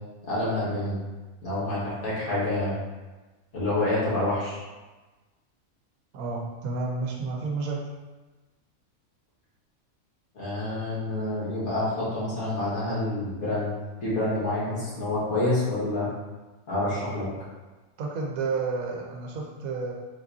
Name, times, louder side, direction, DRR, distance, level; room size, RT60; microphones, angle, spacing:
voice 1, 0.3-1.0 1.4-2.8 3.5-4.6 10.3-13.7 14.0-16.1 16.7-17.3, left 1 dB, 85° left, -8 dB, 2.1 m, -27 dB
voice 2, 6.1-7.8 18.0-19.9, right 4 dB, 80° right, -1 dB, 1.1 m, -30 dB
5.2 x 3.6 x 2.7 m, 1.2 s
omnidirectional pair, 1.5 m